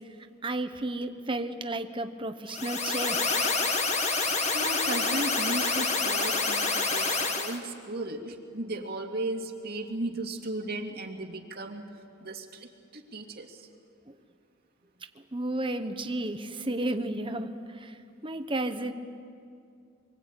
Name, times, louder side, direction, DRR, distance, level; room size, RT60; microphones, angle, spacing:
voice 1, 0.4-3.4 14.1-14.2 15.2-18.0 18.2-18.9, right 1 dB, 25° right, 8 dB, 1.2 m, -32 dB
sound 1, 2.5-7.6, left 3 dB, 35° left, 2.0 m, -27 dB
voice 2, 4.3-11.9 12.2-13.7, right 2 dB, 50° right, 3 dB, 2.5 m, -36 dB
26.0 x 24.0 x 8.7 m, 2.4 s
head